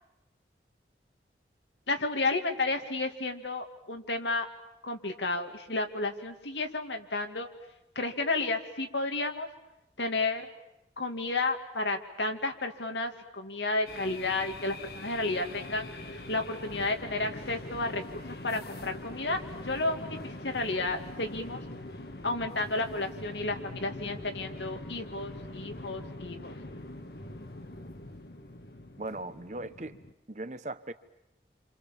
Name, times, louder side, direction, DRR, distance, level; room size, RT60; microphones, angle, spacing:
voice 1, 1.9-4.5 4.8-7.5 8.0-9.5 10.0-10.5 11.0-21.6 22.2-26.5, left 2 dB, 90° left, 5 dB, 2.6 m, -32 dB
sound 1, 13.9-30.1, left 1 dB, 65° left, 1.7 m, -43 dB
voice 2, 29.0-30.0 30.3-30.9, right 2 dB, 40° right, 12 dB, 1.1 m, -38 dB
29.0 x 27.0 x 7.3 m, 0.87 s
head